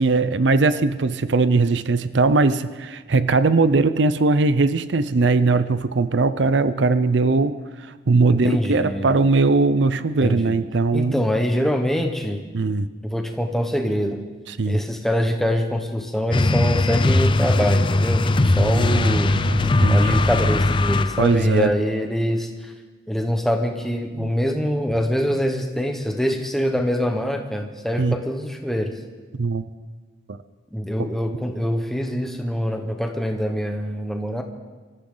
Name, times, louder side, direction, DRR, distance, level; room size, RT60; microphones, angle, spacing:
voice 1, 0.0-11.2 12.5-12.9 14.5-14.8 18.6-20.1 21.2-21.7 24.1-24.3 28.0-28.1 29.4-29.6 30.3-30.4 31.0-31.1, right 3 dB, 70° right, 13 dB, 0.6 m, -20 dB
voice 2, 8.3-9.2 10.2-10.6 10.9-12.4 13.0-14.2 14.7-19.4 19.9-22.7 23.1-29.0 30.7-34.4, equal, ahead, 3 dB, 1.2 m, -24 dB
sound 1, 16.3-21.5, left 2 dB, 25° left, 0.4 m, -19 dB
25.0 x 14.0 x 3.9 m, 1.4 s
head